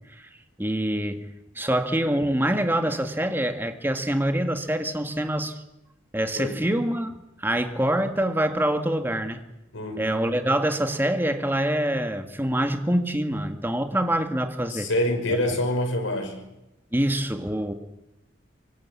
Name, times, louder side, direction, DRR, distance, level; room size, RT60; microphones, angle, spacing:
voice 1, 0.6-1.3 1.6-5.6 6.1-9.4 10.0-14.9 15.3-15.6 16.9-17.7, right 1 dB, 10° right, 6 dB, 1.7 m, -25 dB
voice 2, 6.3-6.7 9.7-10.2 14.7-16.5, left 1 dB, 90° left, 6 dB, 5.7 m, -26 dB
25.5 x 24.0 x 8.5 m, 0.89 s
head